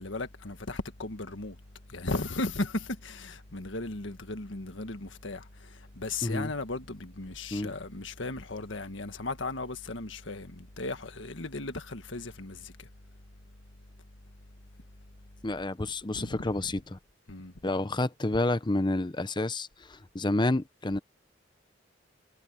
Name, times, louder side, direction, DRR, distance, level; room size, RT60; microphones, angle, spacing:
voice 1, 0.0-1.6 1.9-5.4 5.9-12.7 16.1-16.5 17.3-17.5, left 2 dB, 70° left, 1.7 m, -36 dB
voice 2, 6.2-6.5 7.5-7.7 15.4-17.0 17.6-21.0, left 2 dB, 25° left, 0.8 m, -29 dB
head